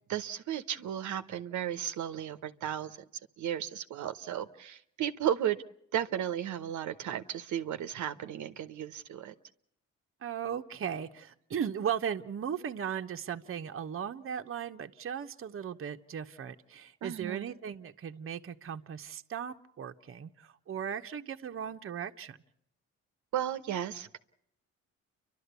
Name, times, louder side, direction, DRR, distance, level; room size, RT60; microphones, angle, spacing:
voice 1, 0.1-3.0 3.4-5.6 5.9-9.3 17.0-17.6 23.3-24.2, right 10 dB, 75° right, 9 dB, 1.0 m, -34 dB
voice 2, 10.2-22.4, right 8 dB, 45° right, 6 dB, 1.0 m, -37 dB
30.0 x 12.5 x 8.2 m, 0.76 s
cardioid pair, 90°, 30 cm